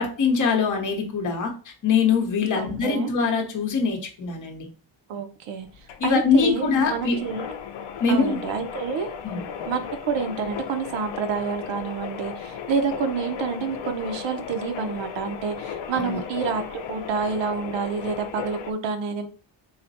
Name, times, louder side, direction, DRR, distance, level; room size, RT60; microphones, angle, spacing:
voice 1, 0.0-4.7 6.0-7.2 8.0-8.4 9.2-9.4 16.0-16.2, left 5 dB, 40° left, 2 dB, 1.0 m, -23 dB
voice 2, 2.5-3.1 5.1-7.5 8.1-9.1 9.7-19.3, right 5 dB, 70° right, 6 dB, 0.7 m, -28 dB
sound 1, 5.6-18.7, left 7 dB, 70° left, 0.6 m, -36 dB
4.0 x 2.1 x 4.0 m, 0.38 s
cardioid pair, 170°, 46 cm